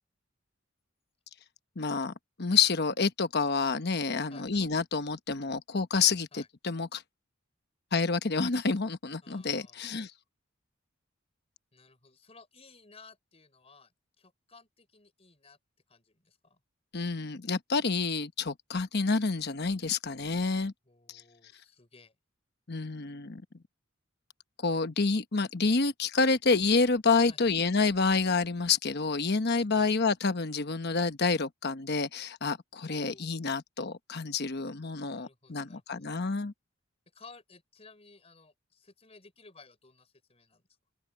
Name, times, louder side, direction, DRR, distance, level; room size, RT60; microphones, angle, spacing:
voice 1, 1.8-2.1 2.4-7.0 7.9-10.1 16.9-20.7 22.7-23.4 24.6-36.5, left 4 dB, 50° left, 1.1 m, -28 dB
voice 2, 4.3-4.6 6.3-6.5 9.2-9.8 11.7-15.6 15.9-16.6 20.8-22.2 27.3-27.5 29.8-29.9 32.8-33.3 35.0-36.1 37.1-40.6, left 4 dB, 30° left, 4.9 m, -56 dB
open air
head